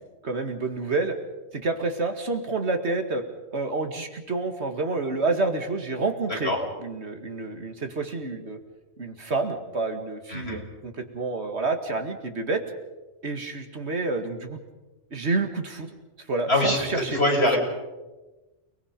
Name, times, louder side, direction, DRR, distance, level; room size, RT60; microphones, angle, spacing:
voice 1, 0.2-1.2 1.5-3.2 3.5-6.5 6.8-8.6 9.0-12.6 13.2-14.6 15.1-15.9 16.3-17.2, right 3 dB, 75° right, 6 dB, 2.3 m, -28 dB
voice 2, 10.3-10.6 16.5-16.8 17.1-17.6, left 1 dB, 65° left, -1 dB, 5.7 m, -22 dB
29.0 x 20.5 x 5.3 m, 1.1 s
omnidirectional pair, 1.1 m